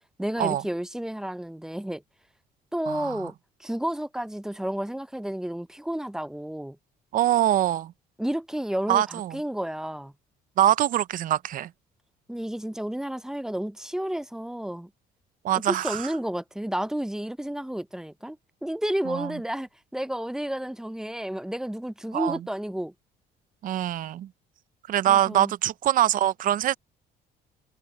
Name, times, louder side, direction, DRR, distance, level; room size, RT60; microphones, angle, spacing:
voice 1, 0.2-2.0 2.7-3.3 3.6-6.8 8.2-10.1 12.3-14.9 15.5-22.9 25.1-25.5, right 1 dB, 5° right, 0.6 m, -31 dB
voice 2, 2.9-3.2 7.1-7.9 8.9-9.4 10.6-11.7 15.4-16.1 19.1-19.3 22.1-22.4 23.6-24.3 24.9-26.7, right 12 dB, 55° right, 0.5 m, -24 dB
cardioid pair, 110°, 17 cm